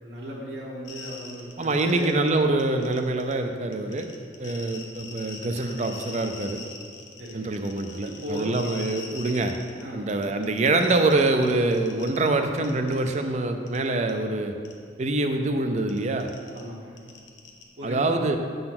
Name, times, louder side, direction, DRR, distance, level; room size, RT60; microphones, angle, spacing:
voice 1, 0.0-2.1 4.5-4.8 7.2-7.5 8.0-8.5 9.8-10.0 16.5-17.0 17.8-18.0, equal, 65° right, -6 dB, 1.2 m, -37 dB
sound 1, 0.9-2.3 2.6-3.3 3.7-9.8 10.1-12.3 12.6-13.1 13.7-13.8 14.1-14.2 14.7-14.8 15.8-17.6, left 4 dB, 75° left, 0.9 m, -42 dB
voice 2, 1.6-4.1 4.4-6.6 7.3-9.5 9.9-14.5 15.0-16.3 17.8-18.4, right 2 dB, 40° right, 6 dB, 0.5 m, -25 dB
7.5 x 4.0 x 5.9 m, 2.3 s
head